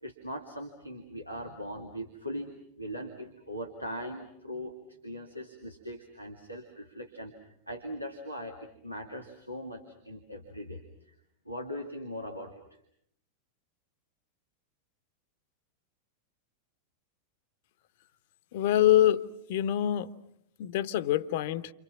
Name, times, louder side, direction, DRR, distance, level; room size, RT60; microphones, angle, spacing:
voice 1, 0.0-4.7 5.0-11.1 11.5-12.5, equal, 90° right, 2.3 m, -40 dB
voice 2, 18.5-19.2 19.5-20.1 20.6-21.7, left 12 dB, 50° left, 1.0 m, -25 dB
30.0 x 27.0 x 6.0 m
figure-of-eight pair, 90°, 0 cm